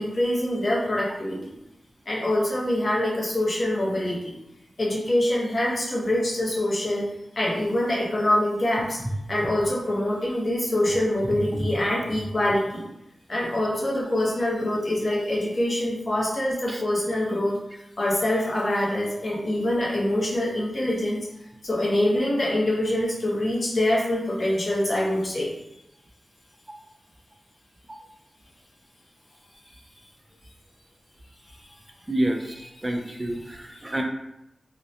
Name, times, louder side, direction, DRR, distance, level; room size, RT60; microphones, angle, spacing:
voice 1, 0.0-1.5 2.1-4.3 4.8-9.0 9.3-12.9 13.3-17.6 18.0-21.3 21.6-25.5 32.4-34.0, left 1 dB, 35° left, -5 dB, 0.7 m, -25 dB
voice 2, 32.1-32.4 32.8-34.0, right 1 dB, 15° right, 2 dB, 0.3 m, -27 dB
2.6 x 2.1 x 2.6 m, 0.86 s
wide cardioid pair, 150°, 0 cm